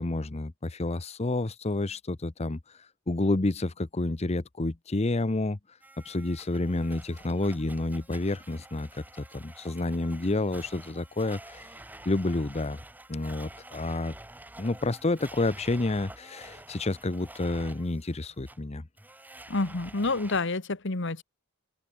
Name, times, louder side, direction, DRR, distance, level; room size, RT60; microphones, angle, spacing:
voice 1, 0.0-5.8 6.0-11.8 12.0-12.8 13.1-14.1 14.6-18.9, left 2 dB, 30° left, 0.8 m, -29 dB
Domestic sounds home sounds, 5.8-20.4, right 1 dB, 10° right, 1.6 m, -49 dB
voice 2, 19.5-21.2, left 3 dB, 60° left, 1.4 m, -28 dB
head